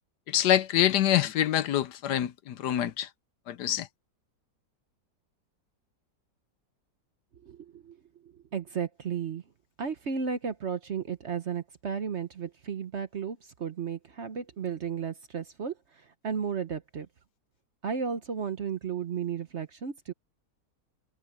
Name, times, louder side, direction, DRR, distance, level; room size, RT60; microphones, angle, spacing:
voice 1, 0.3-3.1 3.5-3.9, left 11 dB, 75° left, 1.3 m, -25 dB
voice 2, 7.4-8.0 8.5-9.4 9.8-15.7 16.2-17.1 17.8-20.1, right 6 dB, 50° right, 1.0 m, -33 dB
omnidirectional pair, 1.9 m